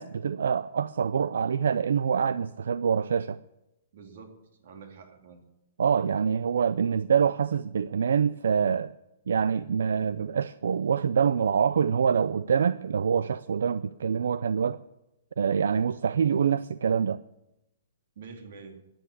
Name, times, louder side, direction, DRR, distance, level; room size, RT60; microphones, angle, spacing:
voice 1, 0.0-3.4 5.8-8.9 9.3-14.8 15.4-17.2, right 7 dB, 90° right, 0.5 m, -25 dB
voice 2, 3.9-5.4 18.1-18.8, right 5 dB, 60° right, 2.7 m, -47 dB
13.5 x 10.0 x 8.2 m
hypercardioid pair, 165°, 0 cm